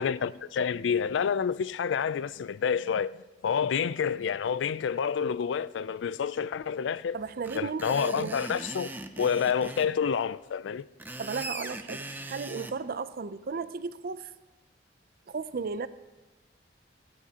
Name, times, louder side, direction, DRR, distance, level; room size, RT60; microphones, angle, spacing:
voice 1, 0.0-3.2 3.4-7.2 7.5-8.9 9.2-10.9, left 7 dB, 85° left, 0.4 m, -28 dB
voice 2, 7.1-8.4 11.2-14.3 15.3-15.9, right 5 dB, 55° right, 0.5 m, -35 dB
Screech, 7.4-9.9 10.8-12.7, right 2 dB, 10° right, 0.6 m, -40 dB
26.0 x 9.3 x 2.9 m
head